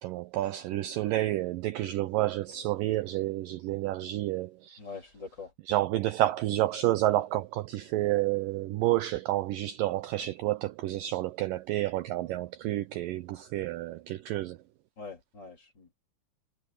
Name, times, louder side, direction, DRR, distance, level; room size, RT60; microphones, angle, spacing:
voice 1, 0.0-4.8 5.7-14.6, right 15 dB, 75° right, 2.1 m, -29 dB
voice 2, 4.8-5.5 15.0-16.0, left 4 dB, 30° left, 4.2 m, -44 dB
omnidirectional pair, 4.5 m